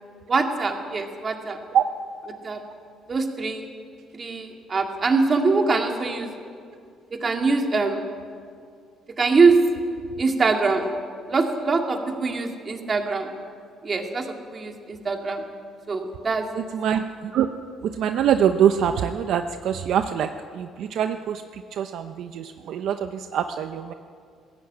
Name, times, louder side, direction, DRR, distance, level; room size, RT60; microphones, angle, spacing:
voice 1, 0.3-1.6 2.4-2.6 3.1-3.7 4.1-6.3 7.2-8.1 9.2-9.6 10.2-10.9 11.3-13.3 13.8-15.4 15.9-16.5, right 4 dB, 30° right, 3 dB, 2.2 m, -23 dB
voice 2, 16.5-17.5 17.8-23.9, right 9 dB, 65° right, 8 dB, 0.8 m, -24 dB
20.0 x 16.5 x 8.9 m, 2.2 s
cardioid pair, 145°, 0 cm